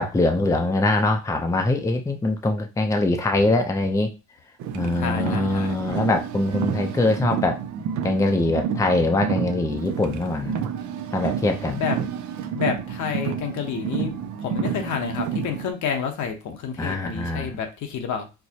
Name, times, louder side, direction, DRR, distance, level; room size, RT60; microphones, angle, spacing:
voice 1, 0.0-4.1 4.7-7.6 8.0-10.6 11.1-11.8 16.8-17.6, left 2 dB, 10° left, 4 dB, 0.5 m, -23 dB
Car, 4.6-15.7, right 7 dB, 70° right, 0.5 m, -30 dB
voice 2, 5.0-5.8 11.7-12.0 12.5-14.1 14.4-18.3, left 7 dB, 70° left, 4 dB, 0.8 m, -29 dB
4.5 x 2.0 x 2.8 m, 0.28 s
cardioid pair, 90°, 30 cm